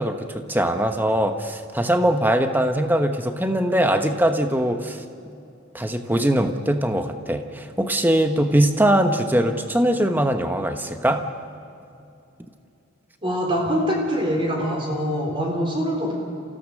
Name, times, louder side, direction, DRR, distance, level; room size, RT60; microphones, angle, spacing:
voice 1, 0.0-5.0 5.7-11.3, right 1 dB, 10° right, 6 dB, 1.0 m, -21 dB
voice 2, 13.2-16.1, equal, 25° right, 0 dB, 3.7 m, -24 dB
28.0 x 16.0 x 6.5 m, 2.6 s
head